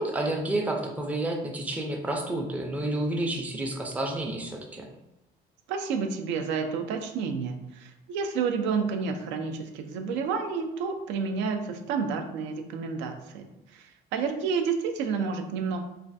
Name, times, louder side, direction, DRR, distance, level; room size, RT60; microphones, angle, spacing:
voice 1, 0.0-4.9, right 1 dB, 10° right, 1 dB, 0.4 m, -30 dB
voice 2, 5.7-15.8, right 5 dB, 85° right, 6 dB, 0.4 m, -30 dB
3.1 x 2.3 x 2.5 m, 0.93 s
cardioid pair, 135°, 18 cm